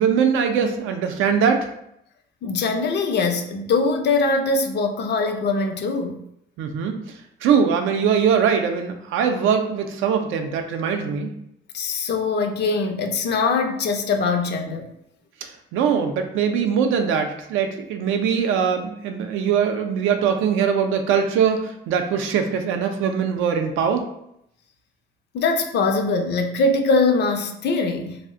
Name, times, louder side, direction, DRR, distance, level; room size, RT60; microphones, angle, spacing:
voice 1, 0.0-1.7 6.6-7.0 7.4-11.3 15.4-24.0, right 7 dB, 85° right, 5 dB, 0.4 m, -21 dB
voice 2, 2.4-6.2 11.7-14.9 25.3-28.2, left 3 dB, 60° left, 5 dB, 0.5 m, -22 dB
2.4 x 2.0 x 3.6 m, 0.77 s
cardioid pair, 90°, 20 cm